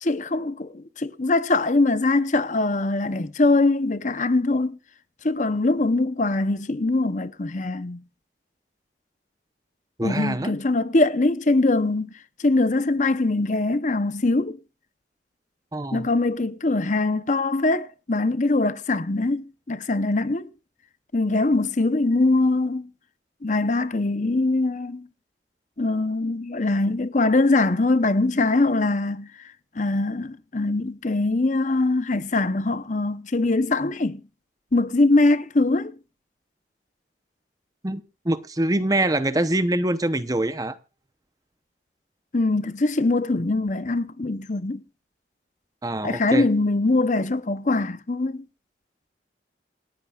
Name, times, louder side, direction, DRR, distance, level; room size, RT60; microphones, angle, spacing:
voice 1, 0.0-4.8 5.2-8.0 10.0-12.1 12.4-14.6 15.9-20.5 21.1-22.9 23.4-25.1 25.8-29.3 29.8-34.2 34.7-35.9 42.3-44.8 46.0-48.5, left 2 dB, 45° left, 0.8 m, -22 dB
voice 2, 10.0-10.5 15.7-16.1 37.8-40.8 45.8-46.5, right 1 dB, 20° right, 0.8 m, -24 dB
27.5 x 9.8 x 2.4 m
head